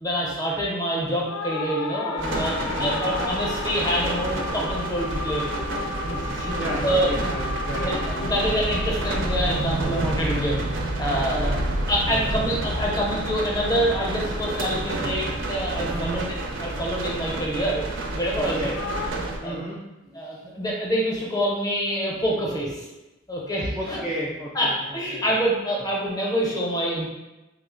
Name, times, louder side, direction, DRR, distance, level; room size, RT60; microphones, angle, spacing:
voice 1, 0.0-5.4 6.4-6.5 6.8-7.1 7.8-11.6 11.9-16.3 16.6-17.8 18.1-18.8 19.4-19.6 20.1-22.8 23.3-24.0 24.5-27.1, equal, 20° left, -3 dB, 0.7 m, -26 dB
sound 1, 1.3-11.8 18.7-19.1, left 4 dB, 80° left, 0.3 m, -34 dB
sound 2, 2.2-19.4, right 1 dB, 60° right, 0.5 m, -29 dB
voice 2, 2.7-3.1 6.0-8.5 11.3-11.7 12.1-12.7 15.9-16.3 18.4-18.7 19.4-19.8 23.8-25.2, equal, 5° right, -7 dB, 0.3 m, -33 dB
3.7 x 2.0 x 3.7 m, 1.0 s
head